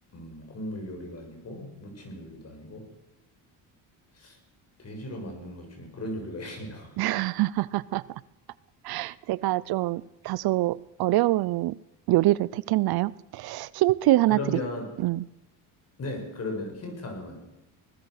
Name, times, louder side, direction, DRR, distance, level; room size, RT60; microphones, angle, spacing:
voice 1, 0.1-2.9 4.1-4.4 4.8-7.0 14.3-14.9 16.0-17.4, left 1 dB, 40° left, 4 dB, 6.8 m, -37 dB
voice 2, 7.0-8.2 8.8-11.7 12.1-14.4 15.0-15.2, right 17 dB, 65° right, 21 dB, 0.6 m, -25 dB
20.0 x 19.5 x 6.6 m, 0.96 s
cardioid pair, 120°, 40 cm